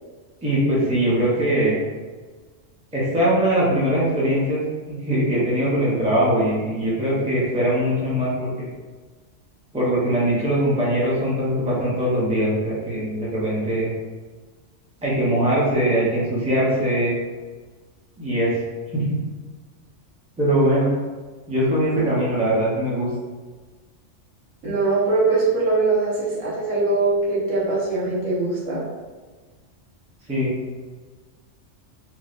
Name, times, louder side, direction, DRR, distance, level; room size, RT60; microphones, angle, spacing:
voice 1, 0.4-1.8 2.9-4.6 5.0-8.7 9.7-13.9 15.0-17.1 18.2-18.5 18.9-19.2 20.4-20.9 21.5-23.1 30.3-30.5, right 1 dB, 10° right, -7 dB, 0.5 m, -21 dB
voice 2, 24.6-28.8, right 3 dB, 80° right, -7 dB, 1.4 m, -22 dB
3.1 x 2.1 x 2.5 m, 1.4 s
omnidirectional pair, 1.3 m